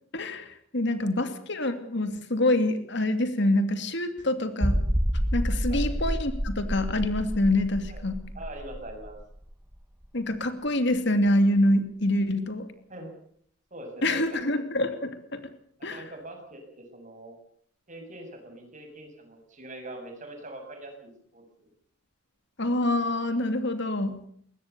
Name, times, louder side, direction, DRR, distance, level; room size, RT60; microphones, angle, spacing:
voice 1, 0.1-4.8 5.3-8.2 10.1-12.7 14.0-15.4 15.8-16.0 22.6-24.2, left 1 dB, 60° left, 9 dB, 2.7 m, -26 dB
sound 1, 4.6-10.0 10.3-10.4 11.0-11.1, equal, 10° right, 1.5 m, -29 dB
voice 2, 8.3-9.1 12.9-13.1 13.7-14.6 15.8-17.4 17.9-21.7, right 1 dB, 40° right, 4 dB, 7.1 m, -43 dB
22.5 x 19.0 x 6.9 m, 0.63 s
head